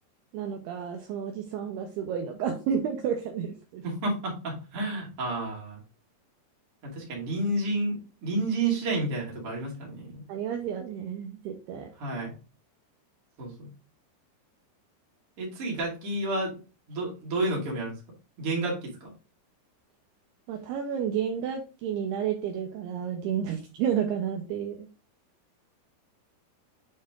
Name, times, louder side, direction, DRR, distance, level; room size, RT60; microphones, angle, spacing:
voice 1, 0.3-3.8 10.3-11.9 20.5-24.9, right 8 dB, 80° right, 3 dB, 2.3 m, -31 dB
voice 2, 3.8-5.8 6.8-10.2 12.0-12.4 13.4-13.7 15.4-16.5 16.9-17.9 18.4-19.1, right 2 dB, 40° right, -3 dB, 2.5 m, -30 dB
7.4 x 4.5 x 3.6 m, 0.32 s
omnidirectional pair, 5.5 m